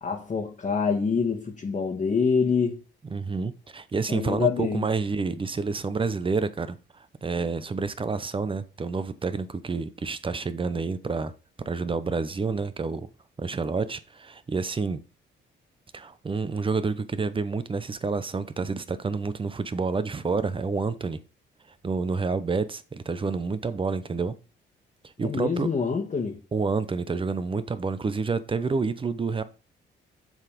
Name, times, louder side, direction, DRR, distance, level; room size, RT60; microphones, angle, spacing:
voice 1, 0.0-2.8 4.1-4.9 25.2-26.4, left 5 dB, 35° left, 1.4 m, -26 dB
voice 2, 3.1-11.3 11.6-13.1 13.4-15.0 15.9-21.2 21.8-24.3 25.2-25.7 26.5-29.4, right 4 dB, 25° right, 0.8 m, -29 dB
7.2 x 4.1 x 5.2 m
cardioid pair, 90°, 20 cm